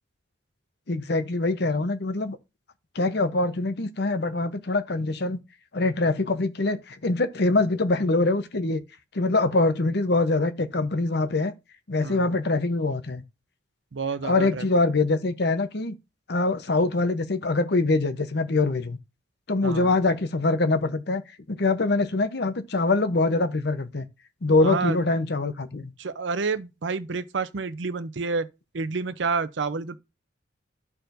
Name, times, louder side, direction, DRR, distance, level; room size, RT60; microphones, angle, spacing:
voice 1, 0.9-2.4 2.9-5.4 5.7-8.8 9.1-11.5 11.9-13.2 14.2-16.0 16.3-19.0 19.5-21.2 21.5-24.1 24.4-25.9, left 2 dB, 60° left, 0.8 m, -24 dB
voice 2, 12.0-12.4 13.9-14.7 19.6-19.9 24.6-25.0 26.0-28.5 28.7-30.0, right 4 dB, 70° right, 0.6 m, -29 dB
13.0 x 4.4 x 2.6 m
head